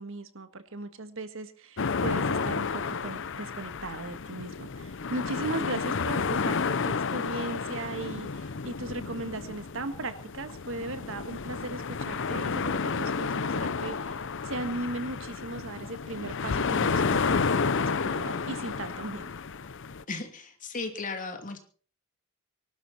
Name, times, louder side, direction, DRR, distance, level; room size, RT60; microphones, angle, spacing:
voice 1, 0.0-19.3, right 2 dB, 65° right, 10 dB, 1.7 m, -37 dB
sound 1, 1.8-20.0, left 5 dB, 60° left, 0.7 m, -31 dB
voice 2, 20.1-21.6, left 3 dB, 40° left, 5 dB, 2.9 m, -36 dB
23.5 x 12.5 x 4.3 m, 0.41 s
head